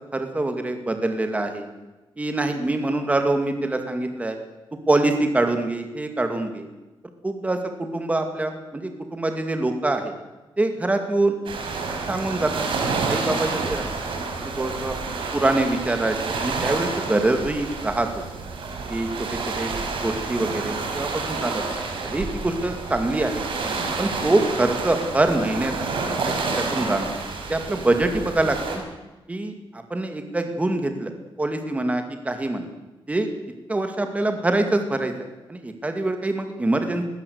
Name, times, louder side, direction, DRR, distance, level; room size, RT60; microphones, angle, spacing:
voice 1, 0.1-1.7 2.2-4.4 4.9-6.7 7.2-10.1 10.6-11.3 12.1-13.9 14.6-15.0 15.3-18.1 18.9-19.7 20.0-21.6 22.0-23.4 24.0-25.7 26.2-27.1 27.5-28.8 29.3-31.1 31.4-32.7 33.1-33.3 33.7-35.1 35.5-37.0, right 2 dB, 15° right, 6 dB, 2.3 m, -24 dB
sound 1, 11.4-28.8, right 4 dB, 70° right, 4.6 m, -29 dB
21.0 x 16.5 x 8.2 m, 1.1 s
wide cardioid pair, 155°, 9 cm